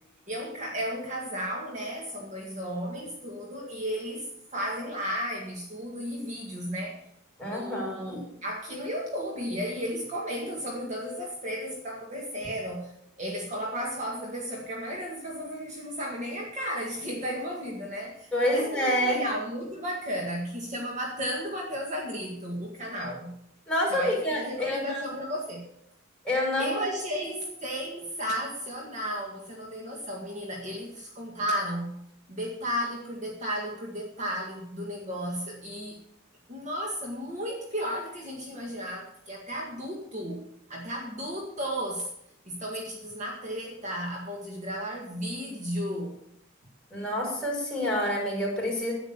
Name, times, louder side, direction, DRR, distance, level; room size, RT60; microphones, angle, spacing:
voice 1, 0.3-7.0 7.4-12.9 13.2-23.3 23.9-25.7 26.6-32.0 32.3-36.0 36.5-40.4 40.7-42.1 42.5-46.2, equal, 35° right, -1 dB, 1.9 m, -34 dB
voice 2, 7.4-8.2 18.3-19.2 23.7-25.1 26.2-26.9 27.2-27.3 46.9-48.9, left 1 dB, 5° left, -4 dB, 5.7 m, -28 dB
10.5 x 9.0 x 6.9 m, 0.74 s
head